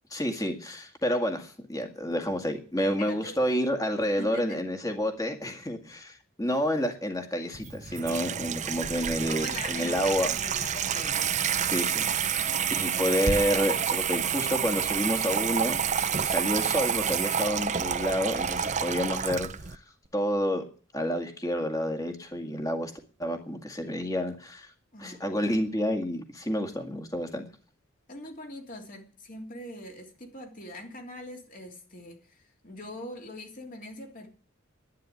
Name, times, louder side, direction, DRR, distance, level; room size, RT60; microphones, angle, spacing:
voice 1, 0.1-10.3 11.6-15.8 16.2-19.8 20.1-20.6 20.9-22.9 23.2-24.7 25.0-27.5, equal, 15° left, 2.0 m, -29 dB
voice 2, 3.0-3.4 4.0-4.6 9.3-11.4 24.9-25.4 28.1-34.3, left 1 dB, 40° left, 3.2 m, -42 dB
Water tap faucet / Sink (filling or washing), 7.5-19.8, right 7 dB, 35° right, 0.6 m, -29 dB
11.5 x 9.7 x 8.6 m
head